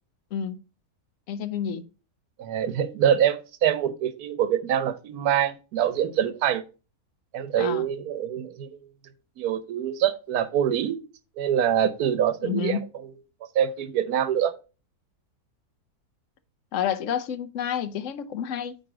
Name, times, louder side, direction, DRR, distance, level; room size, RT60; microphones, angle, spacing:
voice 1, 0.3-0.6 1.3-1.8 7.6-7.9 12.4-12.9 16.7-18.8, left 8 dB, 60° left, 1.0 m, -29 dB
voice 2, 2.4-6.6 7.3-8.9 9.4-11.0 11.4-12.8 13.5-14.5, right 9 dB, 75° right, 1.3 m, -25 dB
9.0 x 3.3 x 4.8 m
omnidirectional pair, 1.7 m